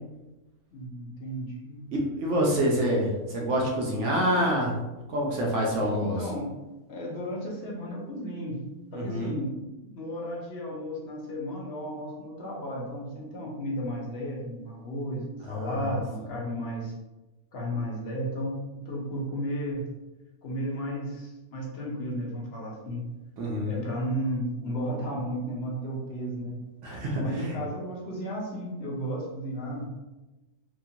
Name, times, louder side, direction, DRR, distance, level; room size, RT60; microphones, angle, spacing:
voice 1, 0.7-1.8 6.0-6.5 6.9-8.6 8.9-16.9 17.5-18.6 18.8-19.9 20.4-23.0 23.7-26.6 27.2-29.9, equal, 55° left, -2 dB, 0.8 m, -34 dB
voice 2, 1.9-4.7 5.1-6.2 8.9-9.3 15.5-15.8 23.4-23.8 26.8-27.6, equal, 65° right, -2 dB, 0.8 m, -27 dB
2.9 x 2.3 x 2.7 m, 1.1 s
omnidirectional pair, 1.6 m